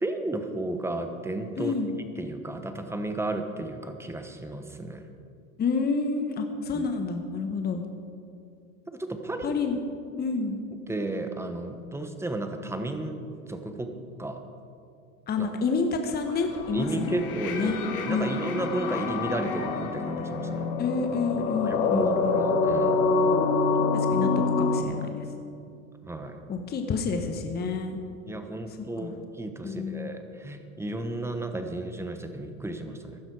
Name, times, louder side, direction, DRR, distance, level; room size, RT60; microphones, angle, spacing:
voice 1, 0.0-5.0 6.7-6.9 8.9-9.5 10.9-13.2 13.5-13.9 14.2-14.4 15.4-15.5 16.7-20.7 21.5-23.0 26.0-26.4 28.3-33.2, right 2 dB, 5° right, 6 dB, 1.1 m, -33 dB
voice 2, 1.6-2.0 5.6-7.8 9.4-9.8 10.2-10.6 15.3-17.2 17.5-17.8 18.1-18.3 20.8-22.5 23.9-24.3 24.6-25.1 26.5-28.0 29.0-29.1 29.6-30.1, left 4 dB, 25° left, 5 dB, 1.1 m, -29 dB
sound 1, 16.3-24.8, left 4 dB, 60° left, 1.9 m, -26 dB
15.5 x 12.0 x 4.9 m, 2.5 s
hypercardioid pair, 110°, 41 cm